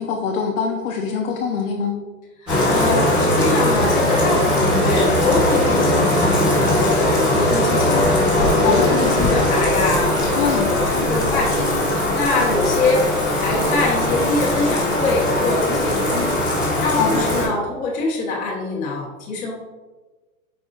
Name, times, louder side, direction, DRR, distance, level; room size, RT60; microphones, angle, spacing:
voice 1, 0.0-2.0 8.6-8.9 10.4-10.7 17.0-17.3, left 6 dB, 65° left, 0 dB, 0.7 m, -23 dB
voice 2, 2.4-11.7 12.1-13.0 13.4-16.4 16.8-19.5, left 2 dB, 20° left, -5 dB, 1.1 m, -24 dB
Bathtub (filling or washing), 2.5-17.5, left 1 dB, ahead, 0.4 m, -19 dB
5.3 x 3.5 x 2.6 m, 1.2 s
hypercardioid pair, 150°, 42 cm